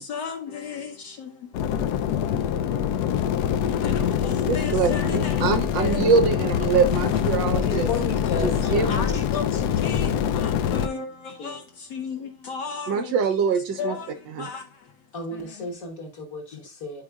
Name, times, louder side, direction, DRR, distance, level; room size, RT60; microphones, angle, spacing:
voice 1, 0.0-3.3 3.7-5.5 5.8-6.1 7.7-7.8 8.8-13.1 13.7-14.9 15.3-15.7 16.5-16.6, left 6 dB, 65° left, 1.1 m, -35 dB
sound 1, 1.5-10.9, left 9 dB, 90° left, 0.8 m, -24 dB
voice 2, 4.5-7.9 8.7-9.0 12.9-14.0 14.3-14.5, right 6 dB, 75° right, 1.2 m, -23 dB
voice 3, 7.5-9.2 9.5-10.1 11.4-11.6 15.1-17.0, left 2 dB, 45° left, 1.6 m, -34 dB
11.0 x 4.8 x 2.2 m
omnidirectional pair, 2.3 m